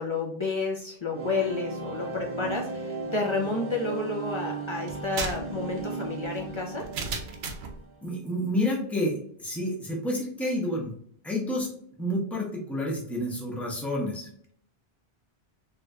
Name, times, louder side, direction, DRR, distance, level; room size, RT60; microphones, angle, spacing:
voice 1, 0.0-6.8, left 3 dB, 45° left, -1 dB, 0.4 m, -30 dB
sound 1, 1.1-8.0, right 3 dB, 30° right, 0.8 m, -36 dB
sound 2, 4.9-7.8, right 4 dB, 80° right, 0.8 m, -35 dB
voice 2, 8.0-10.9 11.2-11.7 12.0-14.3, left 1 dB, ahead, -2 dB, 0.6 m, -29 dB
3.1 x 2.8 x 2.3 m, 0.64 s
omnidirectional pair, 1.0 m